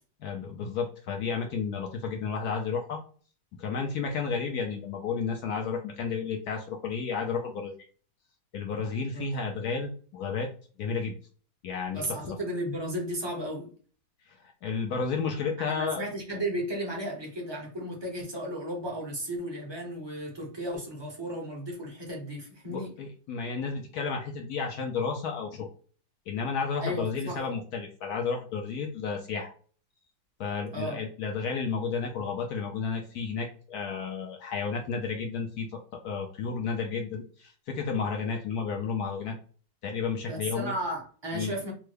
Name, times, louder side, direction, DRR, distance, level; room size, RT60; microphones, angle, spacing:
voice 1, 0.2-3.0 3.6-7.7 8.5-10.5 10.8-11.1 11.6-12.4 14.6-16.0 22.6-25.7 26.3-29.5 30.4-39.3 39.8-40.7 41.3-41.5, left 5 dB, 70° left, 0.9 m, -32 dB
voice 2, 11.9-13.7 15.6-22.9 26.8-27.4 30.7-31.0 40.3-41.7, equal, 30° right, 0.4 m, -34 dB
3.5 x 2.1 x 3.2 m
omnidirectional pair, 2.0 m